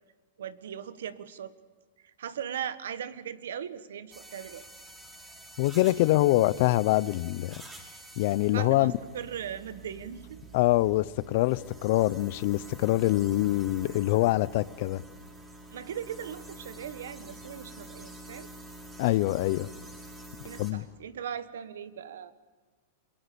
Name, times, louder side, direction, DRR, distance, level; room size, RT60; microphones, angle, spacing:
voice 1, 0.4-1.5 2.2-4.6 8.5-10.4 15.7-18.5 20.4-22.3, right 9 dB, 85° right, 1.4 m, -39 dB
sound 1, 4.1-20.7, right 1 dB, 15° right, 5.3 m, -47 dB
voice 2, 5.6-7.6 8.2-8.9 10.5-15.0 19.0-19.7 20.6-20.8, left 18 dB, 55° left, 0.7 m, -25 dB
27.5 x 22.5 x 7.0 m
hypercardioid pair, 135°, 0 cm